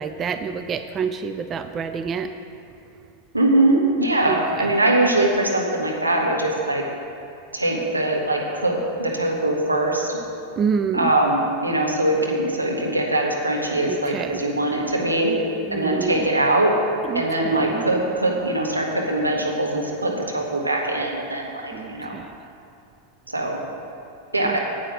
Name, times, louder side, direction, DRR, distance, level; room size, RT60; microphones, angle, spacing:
voice 1, 0.0-2.3 4.3-4.4 10.6-11.1 13.8-14.3 15.7-16.2 17.1-17.2 17.5-17.8 21.7-22.2 24.4-24.6, right 6 dB, 25° right, 9 dB, 0.4 m, -27 dB
voice 2, 3.3-6.8 7.5-10.2 10.9-15.4 15.7-16.7 17.1-22.2 23.3-23.6 24.3-24.6, right 1 dB, 85° right, -1 dB, 1.6 m, -22 dB
9.8 x 8.2 x 6.5 m, 2.6 s
figure-of-eight pair, 90°, 0 cm